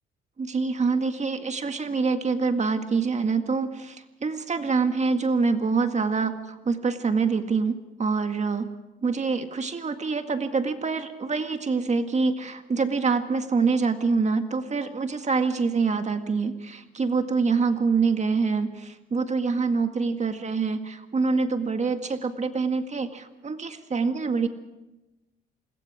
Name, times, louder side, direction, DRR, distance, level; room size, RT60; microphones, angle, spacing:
voice 1, 0.4-8.7 9.0-24.5, right 4 dB, 35° right, 7 dB, 1.9 m, -25 dB
28.0 x 21.0 x 5.0 m, 1.0 s
cardioid pair, 90°, 20 cm